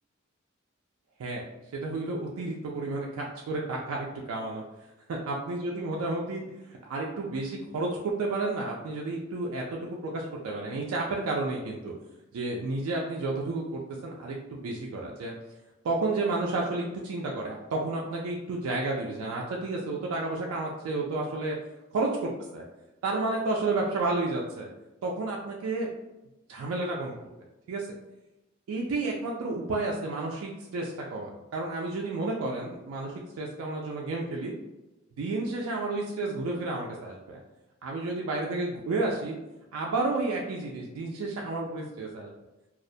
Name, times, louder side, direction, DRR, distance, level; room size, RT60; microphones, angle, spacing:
voice 1, 1.7-4.6 5.1-6.4 6.7-11.9 12.3-15.3 15.8-21.6 21.9-22.6 23.0-24.7 25.0-25.9 26.5-27.2 27.7-27.9 28.7-34.5 35.2-37.4 37.8-39.4 39.7-42.3, right 2 dB, 90° right, -2 dB, 0.3 m, -31 dB
2.3 x 2.1 x 2.6 m, 1.0 s
head